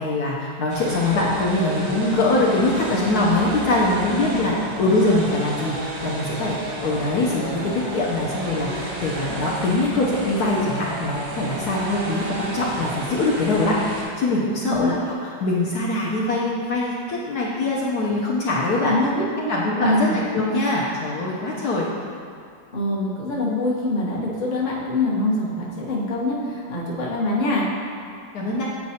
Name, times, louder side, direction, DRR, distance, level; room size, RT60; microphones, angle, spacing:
voice 1, 0.0-18.9 19.5-21.9 28.3-28.6, left 2 dB, 65° left, -5 dB, 1.1 m, -23 dB
sound 1, 0.7-14.0, right 2 dB, 90° right, 1.7 m, -32 dB
voice 2, 18.9-19.5 19.8-20.2 22.7-27.7, left 1 dB, 35° left, -5 dB, 0.8 m, -24 dB
8.4 x 4.6 x 2.8 m, 2.2 s
omnidirectional pair, 2.0 m